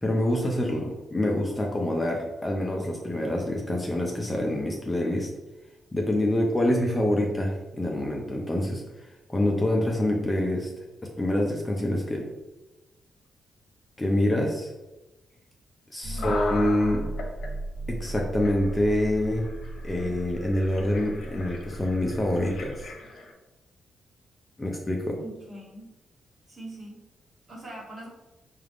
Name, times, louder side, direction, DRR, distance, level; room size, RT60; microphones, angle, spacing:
voice 1, 0.0-5.3 5.9-8.8 9.3-10.7 11.0-12.3 14.0-14.7 15.9-17.1 17.9-19.5 19.8-22.8 24.6-25.2, left 1 dB, 15° left, 0 dB, 0.5 m, -26 dB
voice 2, 16.0-16.4 25.2-25.9 26.5-27.0 27.5-28.1, right 1 dB, 40° right, -3 dB, 1.4 m, -42 dB
sound 1, 16.0-22.9, right 1 dB, 65° right, 0.4 m, -37 dB
sound 2, 16.2-17.5 18.1-18.2 18.4-23.3, left 3 dB, 65° left, 0.8 m, -39 dB
4.8 x 2.4 x 3.4 m, 1.0 s
cardioid pair, 130°, 0 cm